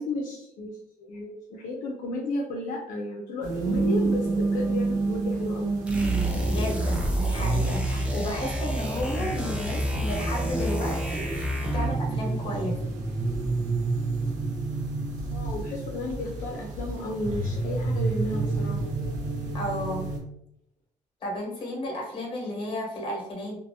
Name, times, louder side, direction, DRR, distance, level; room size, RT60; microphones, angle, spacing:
voice 1, 0.0-5.7 15.3-18.8, left 2 dB, 70° left, -1 dB, 0.5 m, -33 dB
sound 1, 3.4-20.2, right 3 dB, 65° right, 0.7 m, -30 dB
sound 2, 5.9-12.0, right 1 dB, 10° right, 0.4 m, -28 dB
voice 2, 6.4-12.8 19.5-20.1 21.2-23.6, left 1 dB, 40° left, -1 dB, 1.0 m, -33 dB
2.6 x 2.5 x 2.7 m, 0.75 s
cardioid pair, 165°, 14 cm